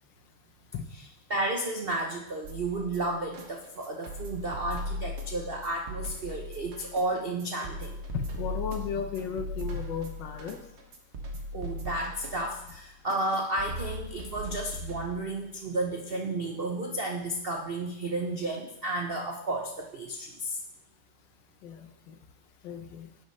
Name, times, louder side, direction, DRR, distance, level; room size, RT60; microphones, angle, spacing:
voice 1, 1.3-8.0 11.5-20.6, right 2 dB, 60° right, 1 dB, 0.5 m, -32 dB
sound 1, 2.4-15.4, left 1 dB, 40° right, 1.1 m, -39 dB
voice 2, 8.1-10.6 21.6-22.1 22.6-23.1, left 6 dB, 70° left, 8 dB, 1.4 m, -35 dB
11.0 x 8.2 x 3.2 m, 0.82 s
omnidirectional pair, 2.3 m